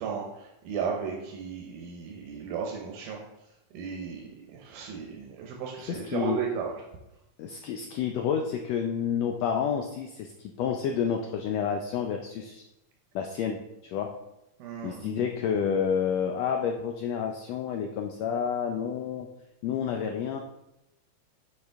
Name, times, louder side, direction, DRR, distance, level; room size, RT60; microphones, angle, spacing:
voice 1, 0.0-3.2 3.7-6.7 14.6-15.3, right 6 dB, 90° right, 0 dB, 2.4 m, -35 dB
voice 2, 5.9-6.4 7.4-12.6 13.1-14.1 14.8-19.3 19.6-20.4, left 7 dB, 85° left, 3 dB, 1.5 m, -29 dB
7.9 x 5.2 x 3.4 m, 0.89 s
omnidirectional pair, 3.6 m